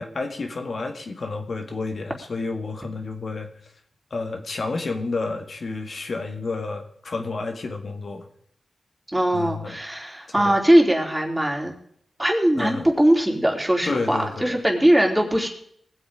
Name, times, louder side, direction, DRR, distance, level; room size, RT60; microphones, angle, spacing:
voice 1, 0.0-3.5 4.1-8.3 9.3-9.8 10.3-10.6 12.5-12.9 13.9-14.6, left 3 dB, 60° left, 5 dB, 2.0 m, -30 dB
voice 2, 9.1-11.7 12.2-15.5, right 1 dB, 10° right, 1 dB, 3.4 m, -20 dB
19.5 x 7.8 x 5.1 m, 0.66 s
cardioid pair, 55°, 0 cm